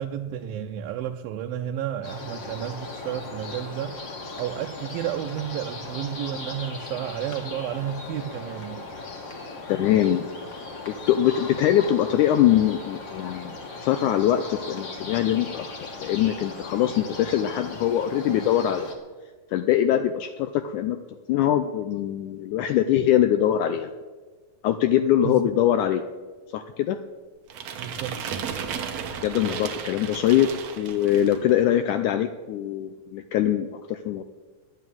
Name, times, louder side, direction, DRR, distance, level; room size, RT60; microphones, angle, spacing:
voice 1, 0.0-4.0 4.4-8.8 25.2-25.4 27.8-28.2, right 10 dB, 85° right, 4 dB, 2.4 m, -31 dB
sound 1, 2.0-18.9, left 3 dB, 40° left, 2.0 m, -38 dB
voice 2, 9.7-10.3 10.9-13.5 13.8-18.9 19.5-21.0 21.3-23.9 24.6-26.0 26.5-27.0 29.2-30.5 30.8-34.2, left 11 dB, 80° left, 9 dB, 1.8 m, -23 dB
sound 2, 27.5-31.5, right 7 dB, 65° right, 2.0 m, -34 dB
10.5 x 9.2 x 9.2 m, 1.3 s
omnidirectional pair, 4.0 m